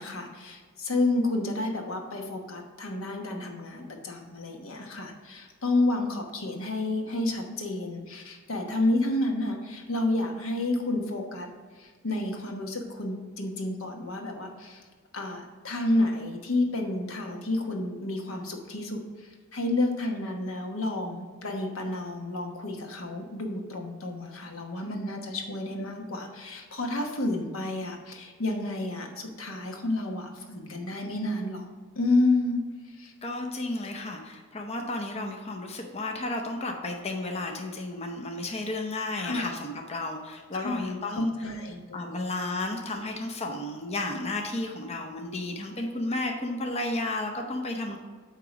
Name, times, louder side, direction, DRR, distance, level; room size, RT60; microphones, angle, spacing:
voice 1, 0.0-11.5 11.8-14.8 15.1-31.7 31.9-32.6 33.0-33.1 39.1-39.5 40.5-42.2, left 2 dB, 80° left, 3 dB, 1.1 m, -30 dB
voice 2, 33.2-41.5 41.9-48.0, left 2 dB, 30° left, 2 dB, 0.6 m, -33 dB
8.7 x 3.0 x 5.9 m, 1.5 s
head